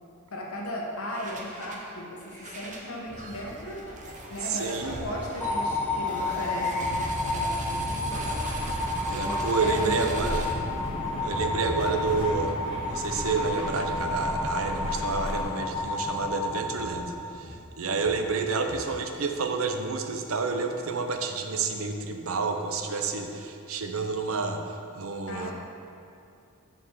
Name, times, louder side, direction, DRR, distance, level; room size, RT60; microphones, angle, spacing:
voice 1, 0.3-3.8 4.3-8.5 9.1-10.3 17.8-18.1 25.3-25.5, left 1 dB, 75° left, -2 dB, 1.3 m, -37 dB
sound 1, 1.1-1.9 2.2-19.2, equal, 35° right, 0.8 m, -38 dB
voice 2, 4.4-5.1 9.1-10.5 11.2-12.6 12.9-25.5, right 4 dB, 75° right, 5 dB, 0.6 m, -29 dB
sound 2, 5.4-17.6, left 2 dB, 10° left, 0.7 m, -31 dB
sound 3, 8.1-15.4, equal, 25° left, 1.8 m, -37 dB
7.0 x 4.5 x 6.5 m, 2.6 s
head